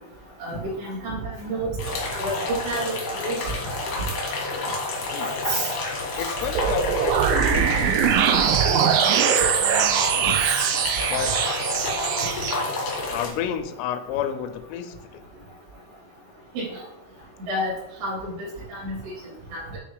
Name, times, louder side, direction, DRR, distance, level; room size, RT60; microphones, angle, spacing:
voice 1, 0.4-1.7 2.1-3.5 5.5-5.7 10.4-10.6 12.1-12.3 16.5-16.6 17.5-17.7 18.0-19.0 19.5-19.6, right 1 dB, 60° right, -6 dB, 4.8 m, -29 dB
sound 1, 1.8-13.3, left 2 dB, 70° left, 1.6 m, -29 dB
voice 2, 6.2-9.2 9.6-10.4 11.1-11.6 13.1-15.2, left 9 dB, 90° left, 9 dB, 3.2 m, -31 dB
sound 2, 6.6-12.5, right 9 dB, 85° right, 2.9 m, -22 dB
9.2 x 3.5 x 4.8 m, 0.95 s
omnidirectional pair, 5.7 m